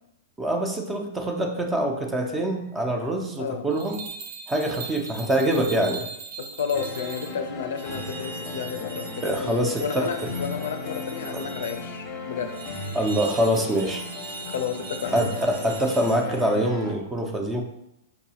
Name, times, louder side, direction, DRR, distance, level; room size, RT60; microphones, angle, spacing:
voice 1, 0.4-4.0 4.5-6.0 9.2-10.1 11.3-11.4 12.9-14.0 15.1-17.6, right 1 dB, 10° right, 3 dB, 0.4 m, -25 dB
sound 1, 3.7-7.4 7.8-11.8 12.5-16.5, right 5 dB, 60° right, 0.6 m, -40 dB
voice 2, 6.4-12.6 14.4-15.3, left 7 dB, 75° left, 7 dB, 0.4 m, -32 dB
sound 2, 6.7-16.9, left 3 dB, 30° left, 0.6 m, -36 dB
5.4 x 2.3 x 2.8 m, 0.81 s
hypercardioid pair, 150°, 0 cm